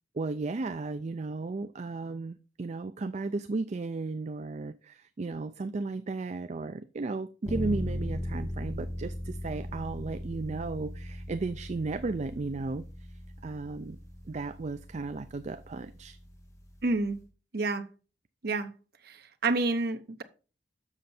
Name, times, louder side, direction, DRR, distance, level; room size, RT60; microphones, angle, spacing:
voice 1, 0.1-12.8 13.4-14.0 14.3-16.2, right 3 dB, 40° right, 0.4 m, -35 dB
sound 1, 7.5-17.2, equal, 20° left, 1.6 m, -39 dB
voice 2, 16.8-17.2 17.5-17.8 18.4-18.7 19.4-20.2, right 3 dB, 60° right, 0.9 m, -28 dB
7.4 x 6.6 x 4.3 m
head